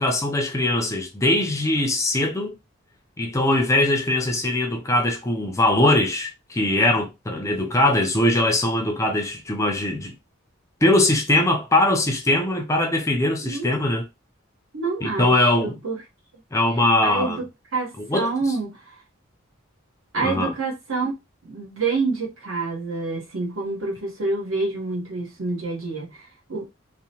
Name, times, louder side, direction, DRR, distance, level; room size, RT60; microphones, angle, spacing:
voice 1, 0.0-2.5 3.2-10.1 10.8-14.0 15.0-15.8 16.5-17.4 18.0-18.3 20.2-20.5, left 1 dB, 15° left, 0.3 m, -21 dB
voice 2, 13.4-13.8 14.7-15.3 15.6-16.0 16.7-17.5 17.7-18.8 20.1-21.1 21.4-26.7, right 3 dB, 75° right, 0.9 m, -27 dB
2.8 x 2.1 x 2.7 m
head